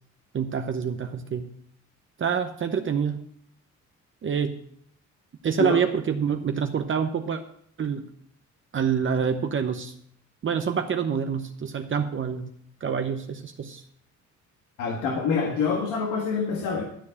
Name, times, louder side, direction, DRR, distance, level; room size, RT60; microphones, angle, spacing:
voice 1, 0.3-1.5 2.2-3.2 4.2-4.6 5.4-7.4 7.8-8.0 8.7-9.9 10.4-12.4 12.8-13.8, right 7 dB, 40° right, 6 dB, 0.9 m, -26 dB
voice 2, 14.8-16.8, left 5 dB, 90° left, 0 dB, 1.7 m, -26 dB
12.5 x 4.6 x 8.5 m, 0.68 s
cardioid pair, 90°, 30 cm